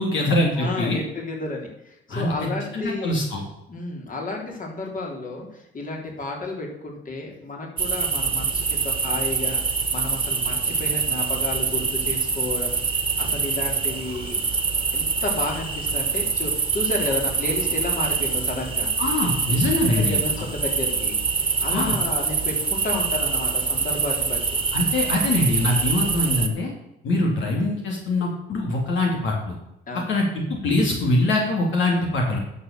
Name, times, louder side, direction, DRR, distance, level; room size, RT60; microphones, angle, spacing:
voice 1, 0.0-1.0 2.1-2.3 2.7-3.4 19.0-20.2 21.7-21.9 24.7-26.7 27.0-29.5 30.1-30.2 30.5-32.4, left 2 dB, 75° left, -1 dB, 2.8 m, -23 dB
voice 2, 0.6-3.4 3.7-14.4 14.9-18.9 19.9-21.2 21.6-24.6 27.0-27.4 29.9-30.2, left 2 dB, 45° left, 0 dB, 3.6 m, -32 dB
sound 1, 7.8-26.5, right 5 dB, 25° right, 1.7 m, -25 dB
11.0 x 6.6 x 6.7 m, 0.87 s
cardioid pair, 90°, 20 cm